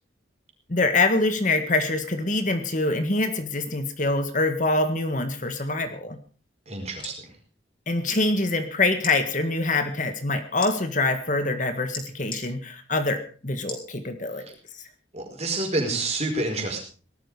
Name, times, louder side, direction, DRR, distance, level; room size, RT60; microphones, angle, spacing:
voice 1, 0.7-6.2 7.9-14.4 14.7-14.8, left 2 dB, 40° left, 7 dB, 1.7 m, -25 dB
voice 2, 6.7-7.1 15.1-16.8, right 2 dB, 35° right, 2 dB, 4.8 m, -28 dB
sound 1, 7.0-7.2 8.0-8.2 9.0-9.2 10.6-10.7 11.9-12.4 13.7-13.9 14.5-14.6, left 3 dB, 25° left, 4.5 m, -35 dB
18.5 x 13.0 x 4.9 m, 0.40 s
head